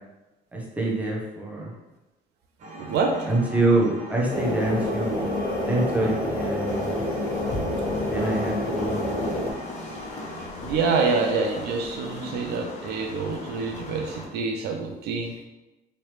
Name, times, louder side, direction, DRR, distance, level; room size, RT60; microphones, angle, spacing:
voice 1, 0.5-1.7 3.3-5.3 5.7-7.0 8.1-9.4, right 2 dB, 10° right, -3 dB, 0.8 m, -26 dB
sound 1, 2.6-10.5, right 1 dB, 45° right, 0.8 m, -40 dB
voice 2, 2.7-3.3 6.0-6.1 10.7-15.5, right 4 dB, 75° right, 3 dB, 0.5 m, -26 dB
sound 2, 4.3-9.5, left 1 dB, 60° left, 1.0 m, -28 dB
sound 3, 6.7-14.3, left 2 dB, 40° left, 0.7 m, -38 dB
3.2 x 2.7 x 3.1 m, 1.0 s
cardioid pair, 110°, 17 cm